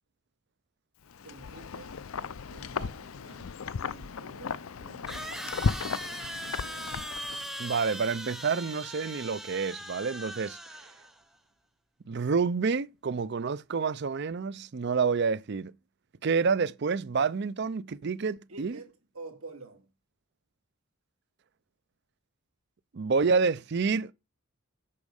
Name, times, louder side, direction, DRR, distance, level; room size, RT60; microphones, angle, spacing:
Wind, 1.1-7.6, left 5 dB, 70° left, 0.5 m, -35 dB
voice 1, 1.2-2.0 2.5-3.5 3.9-5.5 18.5-19.9, right 3 dB, 75° right, 2.1 m, -48 dB
sound 1, 5.1-11.2, equal, ahead, 0.8 m, -40 dB
voice 2, 7.6-10.6 12.1-15.7 16.2-18.8 22.9-24.1, right 5 dB, 50° right, 0.5 m, -28 dB
8.6 x 6.3 x 6.4 m
head